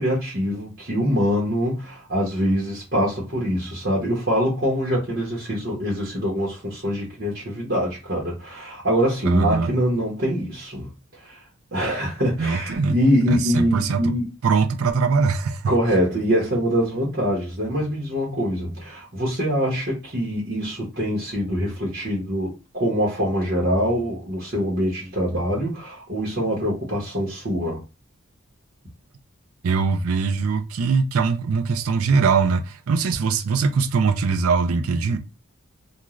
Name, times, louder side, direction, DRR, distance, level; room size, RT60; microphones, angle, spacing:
voice 1, 0.0-10.9 11.2-11.4 11.7-14.3 15.7-27.8, equal, 50° right, 0.9 m, -24 dB
voice 2, 9.3-9.7 12.4-13.0 13.3-14.1 14.4-15.7 29.6-35.2, right 5 dB, 90° right, 0.4 m, -22 dB
2.4 x 2.3 x 3.0 m
head